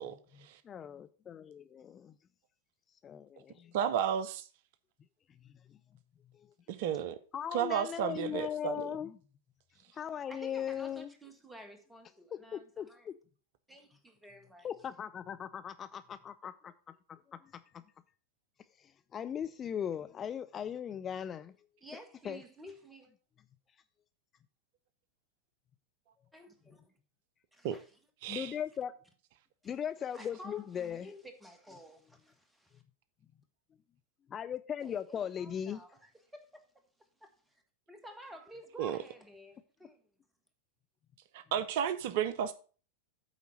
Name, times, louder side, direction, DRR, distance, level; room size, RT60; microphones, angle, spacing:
voice 1, 0.1-2.1 3.0-3.7 5.7-5.8 6.4-6.5 7.3-9.2 9.9-11.1 12.3-13.1 14.6-16.7 17.1-17.5 18.8-21.5 22.2-22.4 28.3-28.9 29.6-31.1 34.3-35.8, left 8 dB, 25° left, 0.4 m, -39 dB
voice 2, 3.7-4.5 6.7-7.2 7.5-8.9 27.6-27.8 28.2-28.5 38.8-39.0 41.3-42.5, right 9 dB, 50° right, 0.5 m, -32 dB
voice 3, 10.3-13.1 13.7-14.7 21.8-23.1 26.3-26.9 27.5-28.0 30.1-32.8 34.8-36.6 37.2-37.6 37.9-40.0, equal, 5° right, 1.6 m, -52 dB
9.0 x 3.9 x 6.3 m
figure-of-eight pair, 90°, 0 cm